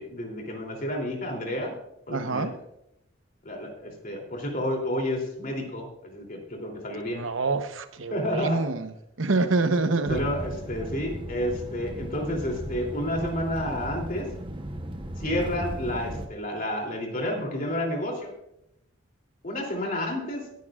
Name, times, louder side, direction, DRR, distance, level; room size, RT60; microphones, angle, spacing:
voice 1, 0.0-1.7 2.1-2.6 3.4-7.3 8.1-8.6 9.6-14.3 15.2-18.3 19.4-20.4, left 1 dB, 45° left, 1 dB, 3.0 m, -30 dB
voice 2, 2.1-2.5 7.1-8.9 9.2-10.2, right 3 dB, 80° right, 9 dB, 0.9 m, -26 dB
sound 1, 10.0-16.3, right 1 dB, 25° right, 0.9 m, -36 dB
18.0 x 10.5 x 2.4 m, 0.81 s
head